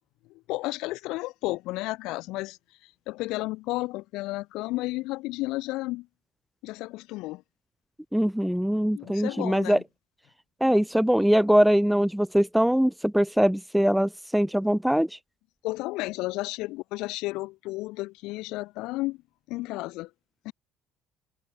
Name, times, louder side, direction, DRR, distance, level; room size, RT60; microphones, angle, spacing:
voice 1, 0.5-2.6 3.1-6.1 6.6-7.4 8.9-9.8 15.6-19.2 19.5-20.1 20.4-20.5, left 20 dB, 70° left, 4.7 m, -32 dB
voice 2, 8.1-9.8 10.6-15.1, equal, 5° right, 0.6 m, -22 dB
hypercardioid pair, 60°, 0 cm